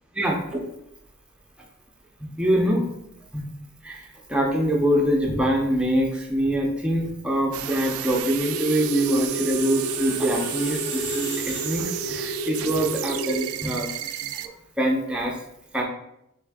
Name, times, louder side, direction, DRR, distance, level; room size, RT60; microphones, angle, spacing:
voice 1, 0.2-0.6 2.4-2.9 3.3-3.4 3.8-13.9 14.3-15.4 15.7-15.8, equal, 5° right, -1 dB, 0.6 m, -24 dB
sound 1, 7.5-14.5, right 12 dB, 80° right, 0.3 m, -32 dB
Screech, 8.2-12.4, left 4 dB, 55° left, 0.5 m, -42 dB
sound 2, 8.4-13.4, right 1 dB, 75° left, 0.9 m, -32 dB
3.6 x 3.3 x 3.5 m, 0.81 s
head